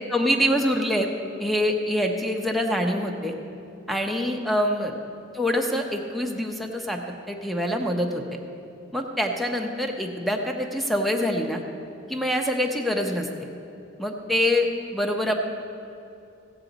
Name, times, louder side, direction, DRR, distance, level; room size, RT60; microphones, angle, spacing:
voice 1, 0.1-1.1 1.4-3.3 3.9-4.9 5.3-7.0 7.3-8.4 8.9-11.6 12.1-13.5 14.0-14.7 14.9-15.4, equal, ahead, 3 dB, 0.7 m, -25 dB
16.0 x 8.2 x 4.0 m, 2.6 s
head